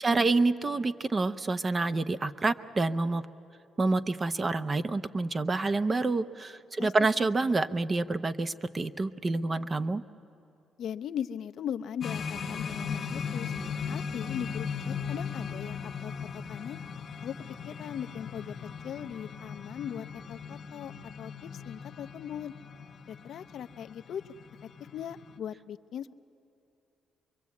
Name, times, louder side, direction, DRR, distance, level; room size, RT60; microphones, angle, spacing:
voice 1, 0.0-3.2 3.8-10.0, right 3 dB, 30° right, 12 dB, 0.7 m, -28 dB
voice 2, 10.8-13.5 13.9-16.8 17.2-17.3 17.6-18.5 18.8-20.9 21.2-22.5 23.1-24.3 24.9-26.1, left 9 dB, 70° left, 11 dB, 0.6 m, -39 dB
sound 1, 12.0-25.4, left 6 dB, 50° left, 1.0 m, -38 dB
24.0 x 23.0 x 8.4 m, 2.8 s
cardioid pair, 90°, 0 cm